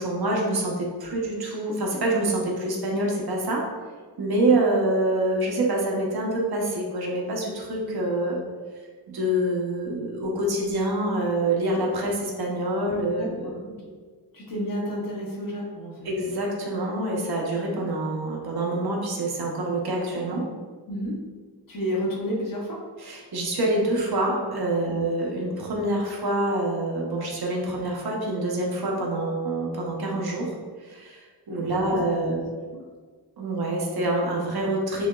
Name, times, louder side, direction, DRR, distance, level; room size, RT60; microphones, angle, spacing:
voice 1, 0.0-3.7 4.2-8.4 9.1-13.6 16.0-20.5 23.0-30.5 30.8-32.4 33.4-35.1, right 1 dB, 65° right, -1 dB, 0.9 m, -26 dB
voice 2, 14.3-15.9 20.9-21.1 21.7-22.8 24.8-24.9 31.6-32.4, equal, 55° left, -4 dB, 1.1 m, -31 dB
6.0 x 2.9 x 2.4 m, 1.5 s
wide cardioid pair, 150°, 40 cm